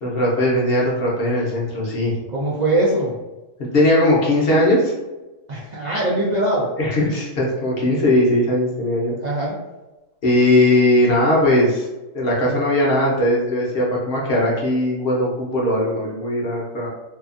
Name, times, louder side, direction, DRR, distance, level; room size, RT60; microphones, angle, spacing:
voice 1, 0.0-2.2 3.6-4.9 6.8-9.2 10.2-11.9 12.1-16.9, left 1 dB, 55° left, -4 dB, 0.8 m, -19 dB
voice 2, 2.3-3.2 5.5-6.7 9.2-9.6, right 1 dB, 85° right, -5 dB, 0.3 m, -21 dB
2.7 x 2.3 x 2.4 m, 1.1 s
omnidirectional pair, 1.4 m